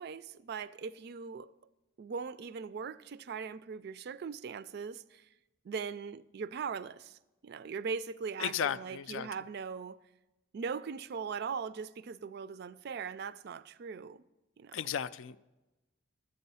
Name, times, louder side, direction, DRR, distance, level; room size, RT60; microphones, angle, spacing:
voice 1, 0.0-1.5 2.0-5.3 5.6-10.0 10.5-14.2 14.6-14.8, right 5 dB, 50° right, 0.3 m, -40 dB
voice 2, 8.4-9.3 14.7-15.5, left 8 dB, 70° left, 0.3 m, -35 dB
11.5 x 7.9 x 5.5 m
head